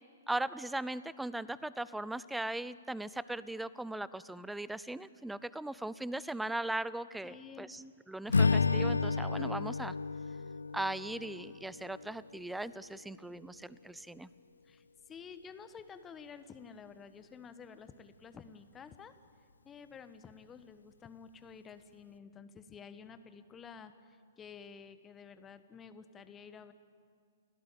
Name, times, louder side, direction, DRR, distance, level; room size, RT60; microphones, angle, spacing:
voice 1, 0.3-9.9 10.7-14.3, right 1 dB, 5° right, 18 dB, 0.6 m, -39 dB
voice 2, 7.2-7.8 14.6-19.2 19.6-26.7, left 6 dB, 15° left, 11 dB, 1.2 m, -51 dB
Strum, 8.3-12.7, left 4 dB, 70° left, 0.7 m, -32 dB
29.0 x 17.5 x 9.0 m, 2.1 s
figure-of-eight pair, 115°, 0 cm